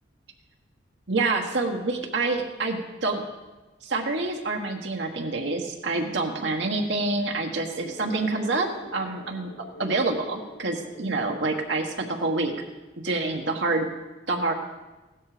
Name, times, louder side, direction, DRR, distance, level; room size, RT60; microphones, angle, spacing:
voice 1, 1.1-3.2 3.8-12.5 13.0-13.9 14.3-14.5, right 3 dB, 70° right, 2 dB, 1.3 m, -27 dB
sound 1, 7.7-12.7, left 1 dB, 75° left, 5.6 m, -45 dB
16.5 x 12.5 x 5.0 m, 1.2 s
head